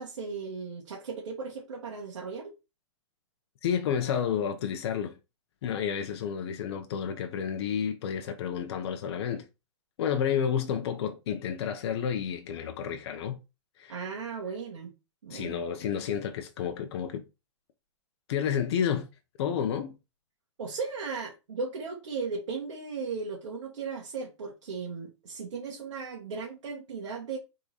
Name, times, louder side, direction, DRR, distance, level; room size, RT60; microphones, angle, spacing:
voice 1, 0.0-2.5 13.9-14.9 15.2-15.6 20.6-27.4, right 5 dB, 80° right, 1.4 m, -36 dB
voice 2, 3.6-5.2 5.6-9.4 10.0-13.4 13.8-13.9 15.3-17.2 18.3-19.1 19.4-19.9, left 8 dB, 60° left, 0.8 m, -30 dB
3.8 x 3.2 x 4.0 m
hypercardioid pair, 135°, 16 cm